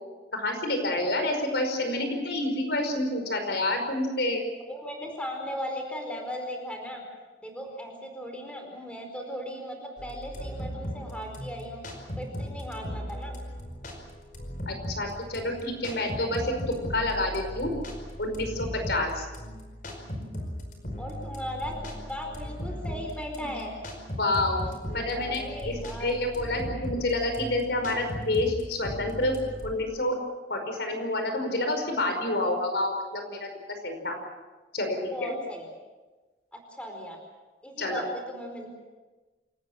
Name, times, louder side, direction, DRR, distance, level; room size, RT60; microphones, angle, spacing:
voice 1, 0.3-4.4 14.7-17.7 18.2-19.3 24.2-24.6 24.9-29.4 29.6-30.2 30.5-33.5 33.8-34.1 34.7-35.3 37.8-38.0, left 1 dB, 65° left, 5 dB, 5.2 m, -28 dB
voice 2, 4.7-7.0 7.4-11.8 12.2-13.3 21.0-23.7 25.2-26.2 35.1-35.6 36.5-37.2 37.6-38.7, equal, 5° left, 3 dB, 4.6 m, -37 dB
sound 1, 10.0-29.7, equal, 45° left, 5.0 m, -38 dB
28.0 x 19.0 x 7.4 m, 1.2 s
head